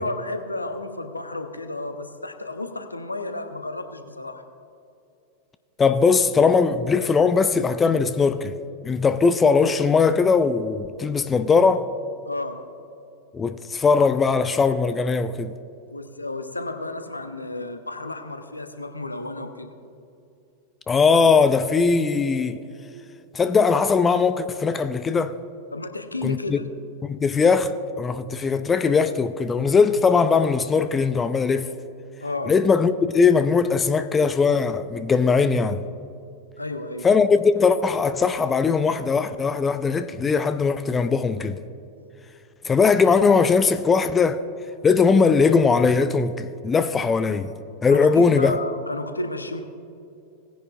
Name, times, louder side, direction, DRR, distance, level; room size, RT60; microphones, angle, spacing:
voice 1, 0.0-4.4 12.3-12.6 15.9-19.7 25.7-26.6 32.2-32.5 36.6-37.1 47.9-49.6, left 2 dB, 80° left, 0.8 m, -32 dB
voice 2, 5.8-8.5 8.8-11.9 13.3-15.5 20.9-22.6 23.3-25.3 26.2-26.6 27.0-31.7 32.5-35.8 37.0-41.6 42.6-44.4 44.8-47.5 47.8-48.6, left 5 dB, 20° left, 0.4 m, -20 dB
18.5 x 10.0 x 2.4 m
figure-of-eight pair, 90°, 0 cm